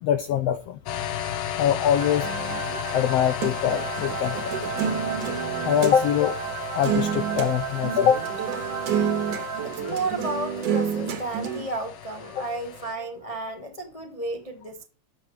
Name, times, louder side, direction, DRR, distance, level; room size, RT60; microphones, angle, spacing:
voice 1, 0.0-0.8 1.6-2.3 2.9-4.6 5.6-6.4 6.7-8.2, left 9 dB, 80° left, 1.4 m, -23 dB
sound 1, 0.9-12.9, left 10 dB, 65° left, 1.5 m, -35 dB
sound 2, 1.9-10.1, right 6 dB, 80° right, 2.6 m, -34 dB
sound 3, 2.2-6.0 6.4-6.5 6.8-7.5 7.8-11.6, right 7 dB, 60° right, 2.2 m, -29 dB
voice 2, 9.6-14.9, right 2 dB, 50° left, 0.4 m, -32 dB
12.5 x 6.8 x 4.7 m
omnidirectional pair, 3.5 m